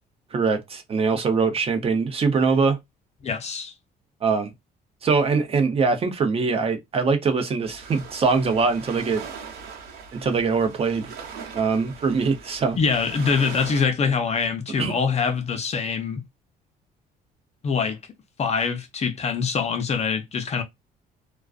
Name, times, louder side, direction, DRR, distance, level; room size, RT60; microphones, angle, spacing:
voice 1, 0.3-2.8 4.2-4.5 5.0-9.2 10.1-11.1 11.5-12.8 14.8-14.9, right 4 dB, 35° right, 0.7 m, -22 dB
voice 2, 3.2-3.7 12.8-16.2 17.6-18.0 18.4-20.6, left 5 dB, 40° left, 0.6 m, -24 dB
sound 1, 7.6-13.9, right 6 dB, 70° right, 1.0 m, -40 dB
2.4 x 2.2 x 2.4 m
cardioid pair, 110°, 17 cm